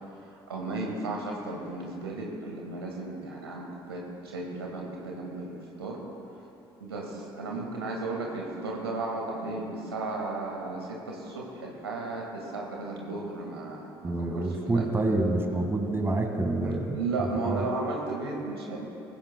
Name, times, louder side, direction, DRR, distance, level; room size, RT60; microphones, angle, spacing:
voice 1, 0.5-6.0 6.8-14.8 16.6-18.9, right 3 dB, 85° right, -1 dB, 1.8 m, -34 dB
voice 2, 14.0-17.0 17.4-17.6, right 2 dB, 20° right, 4 dB, 1.6 m, -27 dB
20.5 x 15.0 x 2.2 m, 2.8 s
figure-of-eight pair, 55°, 13 cm